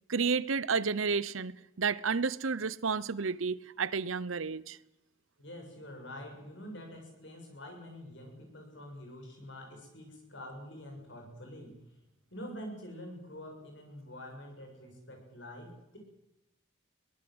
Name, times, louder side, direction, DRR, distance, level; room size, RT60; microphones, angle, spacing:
voice 1, 0.1-4.8, right 5 dB, 70° right, 0.8 m, -31 dB
voice 2, 5.4-11.8 12.3-16.0, equal, 55° left, 7.2 m, -46 dB
22.5 x 19.0 x 8.0 m
head